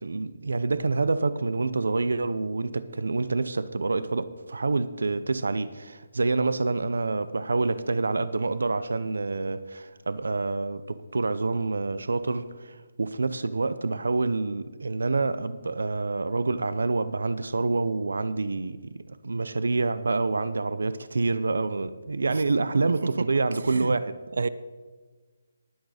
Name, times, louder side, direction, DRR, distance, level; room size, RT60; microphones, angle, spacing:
voice 1, 0.0-18.8 19.1-24.2, right 3 dB, 90° right, 0.7 m, -27 dB
voice 2, 6.4-6.5 22.3-22.4 23.0-23.3 23.7-24.0 24.4-24.5, right 4 dB, 55° right, 0.4 m, -29 dB
19.0 x 6.4 x 5.1 m
hypercardioid pair, 180°, 0 cm